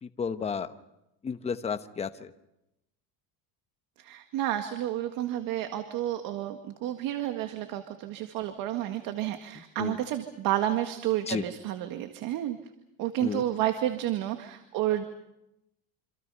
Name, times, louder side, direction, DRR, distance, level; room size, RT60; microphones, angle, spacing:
voice 1, 0.0-0.7 1.2-2.3 9.8-10.0 11.3-11.4 13.2-13.4, left 6 dB, 15° left, 9 dB, 0.9 m, -32 dB
voice 2, 4.0-12.6 13.0-15.0, right 12 dB, 60° right, 7 dB, 1.8 m, -30 dB
27.0 x 26.5 x 5.6 m, 0.88 s
cardioid pair, 155°, 38 cm